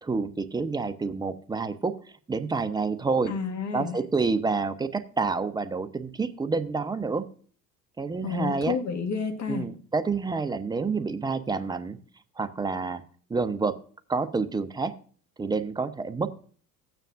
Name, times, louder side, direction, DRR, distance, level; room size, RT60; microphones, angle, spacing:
voice 1, 0.0-1.9 2.3-3.3 3.7-7.2 8.0-8.8 9.5-12.0 12.4-13.0 13.3-13.8 14.1-14.9 15.4-16.3, right 4 dB, 10° right, 12 dB, 0.7 m, -28 dB
voice 2, 3.3-4.0 8.2-9.7, left 5 dB, 35° left, 4 dB, 1.8 m, -30 dB
13.5 x 9.0 x 2.5 m, 0.44 s
figure-of-eight pair, 65°, 49 cm